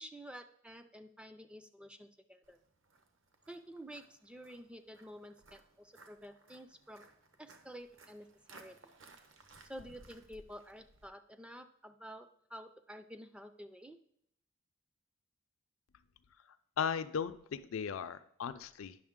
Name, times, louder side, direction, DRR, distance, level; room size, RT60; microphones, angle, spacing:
voice 1, 0.0-2.6 3.5-7.0 7.4-8.8 9.7-14.0, equal, 5° right, 8 dB, 0.3 m, -50 dB
Walk footsteps, 2.4-11.1, right 2 dB, 65° right, 0.9 m, -60 dB
voice 2, 16.8-19.0, left 7 dB, 75° left, 11 dB, 0.4 m, -37 dB
9.6 x 6.2 x 3.6 m, 0.70 s
head